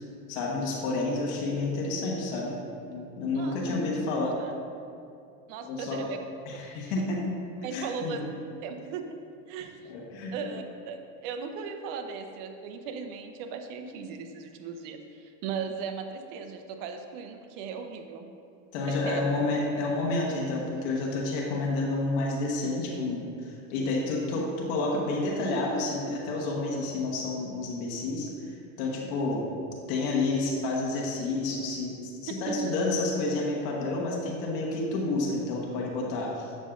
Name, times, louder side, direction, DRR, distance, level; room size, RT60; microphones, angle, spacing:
voice 1, 0.3-2.6 2.9-4.4 5.6-6.0 6.5-7.2 7.7-8.2 9.8-10.3 18.7-28.5 28.8-29.4 29.9-36.5, left 2 dB, 65° left, -2 dB, 1.3 m, -30 dB
voice 2, 5.5-6.2 7.1-7.2 7.6-8.2 8.6-9.1 9.5-9.8 10.3-18.3 18.9-19.2 32.5-32.7, right 5 dB, 60° right, 5 dB, 0.8 m, -37 dB
7.4 x 6.4 x 2.5 m, 2.5 s
supercardioid pair, 115°, 38 cm